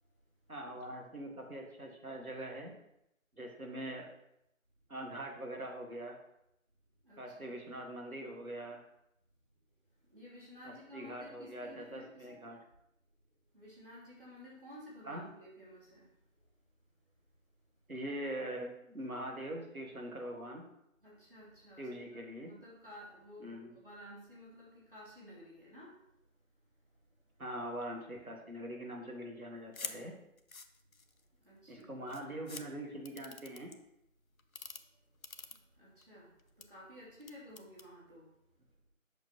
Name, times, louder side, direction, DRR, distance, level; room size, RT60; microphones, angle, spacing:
voice 1, 0.5-2.7 3.4-4.1 4.9-6.2 7.2-8.8 10.7-12.6 15.0-15.2 17.9-20.6 21.8-22.5 23.4-23.8 27.4-30.1 31.7-33.7, right 1 dB, 90° right, 1 dB, 1.8 m, -43 dB
voice 2, 7.0-7.5 10.1-12.3 13.5-16.1 21.0-25.9 31.4-32.1 35.8-36.3 36.7-38.3, equal, 40° right, -7 dB, 2.8 m, -53 dB
sound 1, 29.7-30.0 30.4-31.2 31.8-31.9 32.1-32.6 33.0-33.7 34.4-34.8 35.2-36.0 36.4-36.6 37.2-37.9, left 4 dB, 75° left, 0.7 m, -45 dB
8.5 x 5.9 x 2.9 m, 0.81 s
figure-of-eight pair, 175°, 42 cm